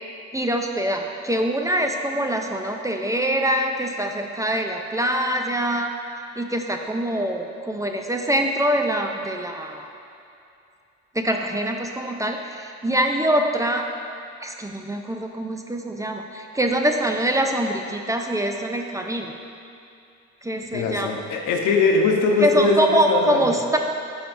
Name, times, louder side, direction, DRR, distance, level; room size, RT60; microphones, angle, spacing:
voice 1, 0.3-5.9 6.4-9.9 11.1-13.9 14.4-19.3 20.4-21.1 22.4-23.8, right 1 dB, 10° right, 3 dB, 0.5 m, -24 dB
voice 2, 20.7-23.6, left 4 dB, 90° left, 1 dB, 0.9 m, -21 dB
12.0 x 5.1 x 2.6 m, 2.6 s
cardioid pair, 90°, 30 cm